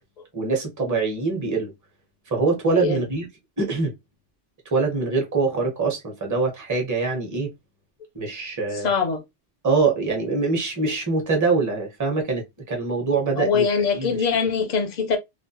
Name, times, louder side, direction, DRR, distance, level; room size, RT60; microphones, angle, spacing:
voice 1, 0.3-1.7 2.3-3.3 3.6-3.9 4.7-7.5 8.1-8.9 9.6-13.7 13.9-14.2, right 4 dB, 20° right, 0.7 m, -24 dB
voice 2, 2.7-3.0 8.7-9.2 13.4-15.2, left 5 dB, 50° left, 0.5 m, -23 dB
2.4 x 2.1 x 2.6 m
omnidirectional pair, 1.2 m